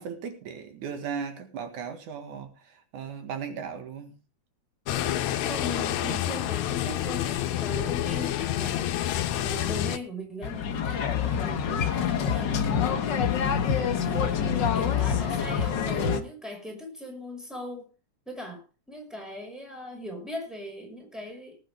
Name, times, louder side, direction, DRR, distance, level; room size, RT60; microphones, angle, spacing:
voice 1, 0.0-4.2, right 6 dB, 85° right, 3.3 m, -37 dB
sound 1, 4.9-10.0, left 12 dB, 75° left, 2.1 m, -28 dB
voice 2, 5.5-9.0 9.3-14.5 14.7-17.9 18.3-21.6, equal, ahead, 5.4 m, -39 dB
sound 2, 10.4-16.2, left 7 dB, 50° left, 1.4 m, -26 dB
19.0 x 9.1 x 3.5 m
omnidirectional pair, 3.4 m